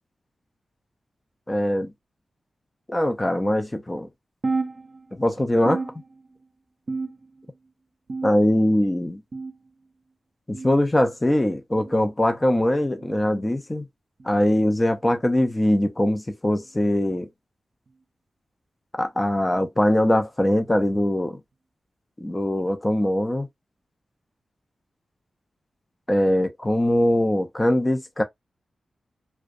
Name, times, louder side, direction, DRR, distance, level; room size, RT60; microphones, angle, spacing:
voice 1, 1.5-1.9 2.9-4.1 5.1-5.8 8.2-9.2 10.5-13.9 14.2-17.3 19.0-21.4 22.2-23.5 26.1-28.2, left 1 dB, 25° left, 0.6 m, -22 dB
sound 1, 4.4-5.3 5.7-6.5 6.9-7.5 8.1-8.7 9.3-9.7 10.5-10.8 11.8-12.0 13.0-13.2 14.2-14.4 15.4-15.6 16.6-16.8 17.9-18.0 19.1-19.2, right 3 dB, 60° right, 0.5 m, -32 dB
2.4 x 2.2 x 2.5 m
cardioid pair, 45°, 0 cm